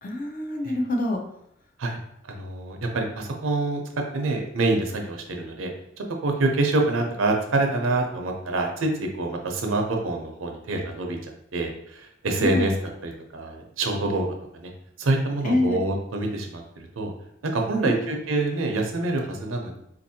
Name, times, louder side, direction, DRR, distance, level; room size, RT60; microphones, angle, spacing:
voice 1, 0.0-1.2 12.4-12.7 15.4-15.8 17.8-18.2, left 1 dB, 40° left, 2 dB, 0.5 m, -26 dB
voice 2, 2.3-3.8 4.1-5.7 6.0-12.8 13.0-14.3 14.5-14.7 15.0-17.1 17.4-19.8, right 2 dB, 85° right, 3 dB, 0.6 m, -26 dB
4.0 x 2.6 x 2.7 m, 0.76 s
head